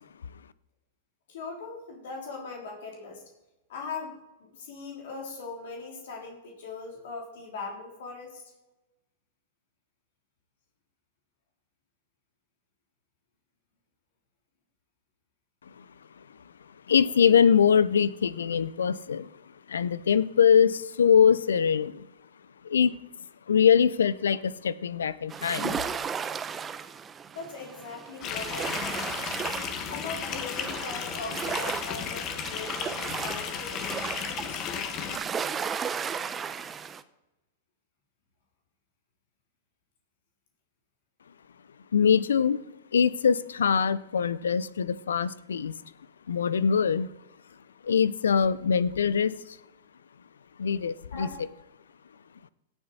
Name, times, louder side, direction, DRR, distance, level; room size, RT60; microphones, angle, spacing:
voice 1, 1.3-3.2 3.7-8.4 27.3-29.3 29.9-34.7 51.1-51.4, left 4 dB, 65° left, 0 dB, 3.3 m, -40 dB
voice 2, 16.9-19.3 19.7-22.1 22.6-23.0 23.5-25.8 41.9-42.6 42.9-45.7 46.3-47.1 47.8-49.6 50.6-51.3, left 7 dB, 85° left, 19 dB, 0.5 m, -23 dB
sound 1, 25.3-37.0, right 6 dB, 20° right, 0.7 m, -35 dB
sound 2, 28.2-35.2, left 7 dB, 40° left, 1.4 m, -34 dB
17.5 x 7.1 x 4.2 m, 1.0 s
hypercardioid pair, 110°, 0 cm